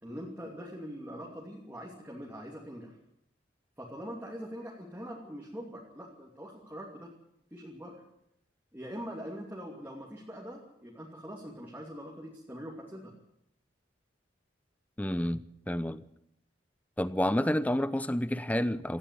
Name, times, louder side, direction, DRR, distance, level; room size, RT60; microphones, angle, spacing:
voice 1, 0.0-3.0 3.8-7.1 7.5-8.0 8.7-13.1, equal, 10° right, 2.7 m, -43 dB
voice 2, 15.0-15.4 15.7-16.0 17.0-19.0, left 1 dB, 10° left, 0.7 m, -29 dB
18.0 x 14.5 x 9.9 m
head